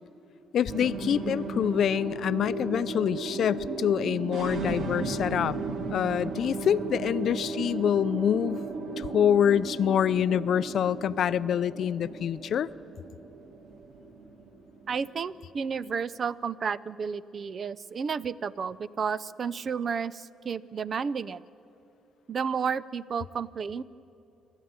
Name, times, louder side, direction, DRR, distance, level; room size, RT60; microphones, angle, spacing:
voice 1, 0.5-5.6 5.9-8.6 9.0-12.7, left 9 dB, 65° left, 16 dB, 0.5 m, -26 dB
sound 1, 0.7-15.3, right 3 dB, 70° right, 2.3 m, -35 dB
voice 2, 14.9-21.4 22.3-23.8, right 6 dB, 50° right, 18 dB, 0.6 m, -32 dB
26.5 x 13.0 x 9.7 m, 2.8 s
cardioid pair, 90°, 0 cm